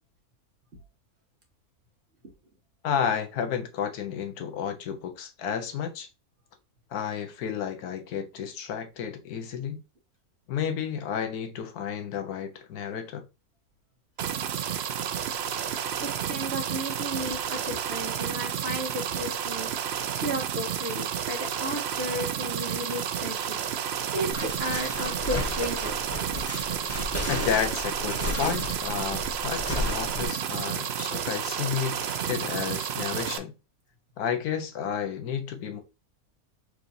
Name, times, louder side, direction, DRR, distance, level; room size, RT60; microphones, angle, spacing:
voice 1, 2.8-6.1 6.9-9.8 10.5-13.2 27.3-33.5 34.2-35.8, left 8 dB, 80° left, 1.3 m, -31 dB
sound 1, 14.2-33.4, right 9 dB, 70° right, 0.6 m, -31 dB
voice 2, 15.5-25.9, right 1 dB, 45° right, 1.3 m, -34 dB
sound 2, 24.3-30.3, left 1 dB, 10° left, 1.1 m, -33 dB
5.0 x 3.1 x 2.6 m
omnidirectional pair, 1.6 m